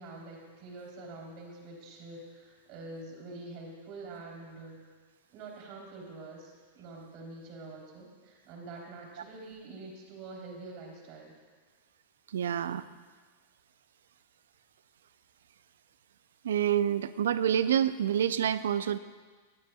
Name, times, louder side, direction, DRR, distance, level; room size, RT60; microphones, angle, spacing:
voice 1, 0.0-4.8 5.3-11.3, right 2 dB, 50° right, -1 dB, 3.6 m, -46 dB
voice 2, 12.3-12.9 16.4-19.0, right 9 dB, 75° right, 14 dB, 0.5 m, -27 dB
22.0 x 10.0 x 2.4 m, 1.5 s
hypercardioid pair, 100°, 0 cm